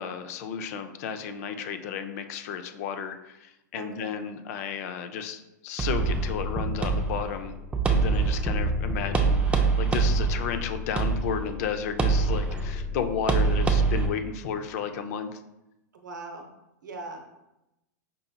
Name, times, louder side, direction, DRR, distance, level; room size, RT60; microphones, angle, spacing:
voice 1, 0.0-7.5 7.9-15.4, left 7 dB, 55° left, 8 dB, 0.4 m, -33 dB
voice 2, 3.8-4.1 15.9-16.5 16.8-17.4, right 3 dB, 90° right, 3 dB, 0.7 m, -40 dB
sound 1, 5.8-14.1, right 4 dB, 10° right, 0.4 m, -25 dB
5.3 x 2.7 x 2.2 m, 0.91 s
hypercardioid pair, 125°, 10 cm